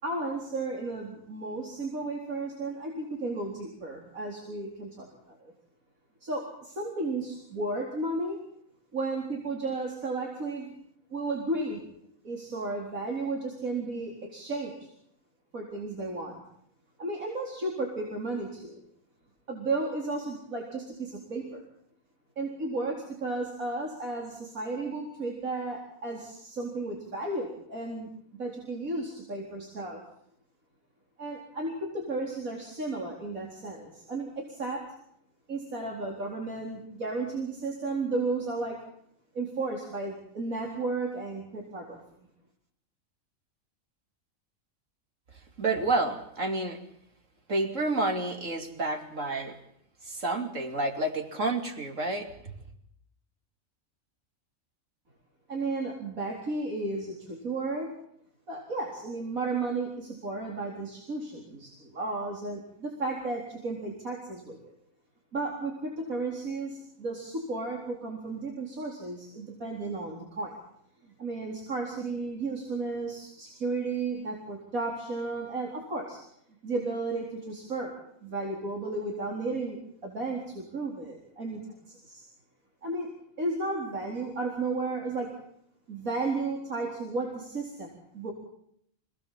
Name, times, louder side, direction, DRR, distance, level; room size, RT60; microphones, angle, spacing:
voice 1, 0.0-5.5 6.2-8.4 8.9-10.7 11.1-11.8 12.2-14.8 15.5-16.4 17.0-18.8 19.5-21.6 22.4-28.1 28.4-30.0 31.2-34.8 35.5-38.8 39.3-42.0 55.5-57.9 58.5-64.7 65.3-70.5 71.2-76.2 76.6-77.9 78.2-81.6 82.1-82.2 82.8-83.1 83.4-85.3 85.9-88.3, right 3 dB, 90° right, -1 dB, 4.5 m, -33 dB
voice 2, 45.6-46.8 47.5-49.6 50.0-52.5, right 2 dB, 65° right, 4 dB, 3.3 m, -29 dB
26.5 x 18.5 x 7.5 m, 0.70 s
omnidirectional pair, 1.4 m